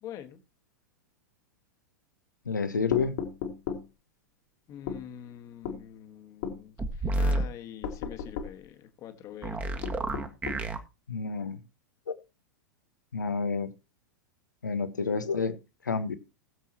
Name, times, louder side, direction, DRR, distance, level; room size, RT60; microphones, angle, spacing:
voice 1, 0.0-0.4 4.7-9.9, left 10 dB, 35° left, 1.6 m, -45 dB
voice 2, 2.5-3.2 11.1-11.6 13.1-13.7 14.6-15.6 15.8-16.2, left 5 dB, 75° left, 1.1 m, -29 dB
sound 1, 2.9-3.9 4.9-5.0 5.6-5.8 6.4-6.6 7.8-8.6 9.8-10.7, left 7 dB, 50° left, 2.0 m, -35 dB
sound 2, 6.8-7.4 9.4-10.8, right 2 dB, 15° right, 1.5 m, -29 dB
20.0 x 7.2 x 2.9 m
figure-of-eight pair, 95°, 10 cm